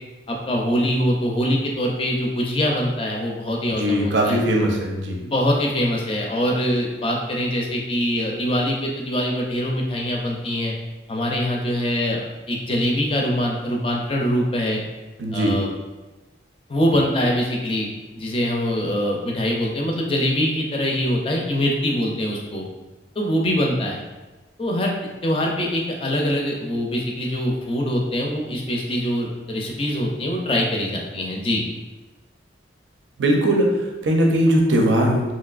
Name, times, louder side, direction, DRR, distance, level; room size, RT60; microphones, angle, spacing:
voice 1, 0.3-4.4 5.2-10.7 11.1-14.8 15.3-15.7 16.7-17.9 18.2-22.6 23.2-24.0 24.6-25.0 25.2-31.6, equal, 30° left, -1 dB, 0.4 m, -23 dB
voice 2, 3.7-5.2 15.2-15.6 33.2-35.3, right 1 dB, 80° right, 1 dB, 0.5 m, -20 dB
3.0 x 2.7 x 2.4 m, 1.2 s
head